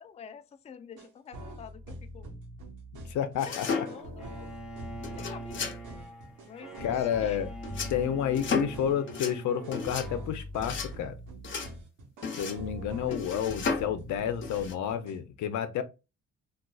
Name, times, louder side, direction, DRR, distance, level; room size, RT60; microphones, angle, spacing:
voice 1, 0.0-2.3 3.5-4.5 5.0-6.0 6.5-7.4 13.1-13.2, left 7 dB, 20° left, 0.4 m, -48 dB
sound 1, 1.0-15.2, right 1 dB, 85° right, 1.1 m, -43 dB
voice 2, 3.1-3.9 5.2-5.3 6.8-7.5 7.9-11.2 12.4-15.8, left 9 dB, 75° left, 0.5 m, -30 dB
sound 2, 3.4-4.2 5.0-5.8 7.6-8.0 8.3-8.8 9.1-9.4 9.7-10.1 10.6-10.9 11.4-11.7 12.2-12.6 13.1-13.9 14.4-14.7, left 5 dB, 40° left, 0.7 m, -33 dB
Bowed string instrument, 4.2-10.3, right 1 dB, ahead, 0.8 m, -45 dB
3.6 x 2.3 x 2.3 m
cardioid pair, 90°, 30 cm